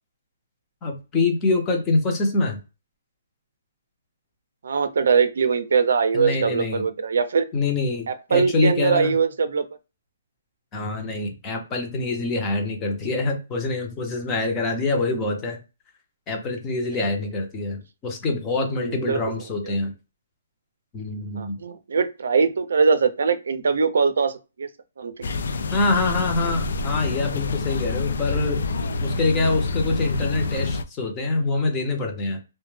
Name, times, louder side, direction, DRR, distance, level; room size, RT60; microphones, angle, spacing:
voice 1, 0.8-2.6 6.1-6.8 7.5-9.1 10.7-15.6 16.3-19.9 20.9-21.6 25.7-28.6 29.0-32.4, left 3 dB, 15° left, 3 dB, 0.6 m, -25 dB
voice 2, 4.6-7.5 8.1-9.6 18.8-19.2 21.4-24.7 25.0-25.1, right 5 dB, 70° right, 11 dB, 0.4 m, -22 dB
sound 1, 25.2-30.8, left 3 dB, 65° left, 0.3 m, -27 dB
2.1 x 2.0 x 3.1 m, 0.30 s
hypercardioid pair, 165°, 0 cm